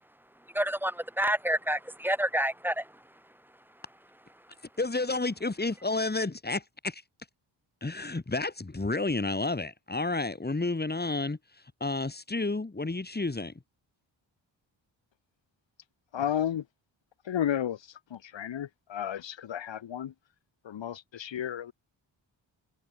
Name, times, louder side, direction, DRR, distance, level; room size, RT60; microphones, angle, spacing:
voice 1, 0.5-2.9, right 1 dB, 5° right, 0.7 m, -28 dB
voice 2, 4.8-7.0 7.8-11.4 11.8-13.5, left 3 dB, 20° left, 2.7 m, -30 dB
voice 3, 16.1-16.7 17.2-20.1 20.6-21.7, left 10 dB, 75° left, 1.9 m, -33 dB
cardioid pair, 60°, 46 cm